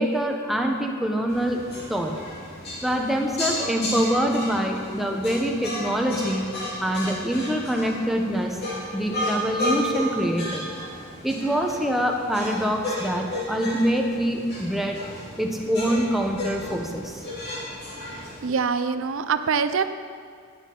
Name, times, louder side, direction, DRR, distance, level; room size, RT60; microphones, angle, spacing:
voice 1, 0.0-1.6 1.9-2.1 2.8-6.5 6.8-8.6 8.9-10.6 11.2-15.0 15.4-17.2, equal, ahead, 1 dB, 0.9 m, -25 dB
sound 1, 1.3-18.5, left 1 dB, 50° left, 2.9 m, -33 dB
voice 2, 18.4-19.8, right 5 dB, 65° right, 11 dB, 0.5 m, -24 dB
10.5 x 10.5 x 3.8 m, 2.1 s
head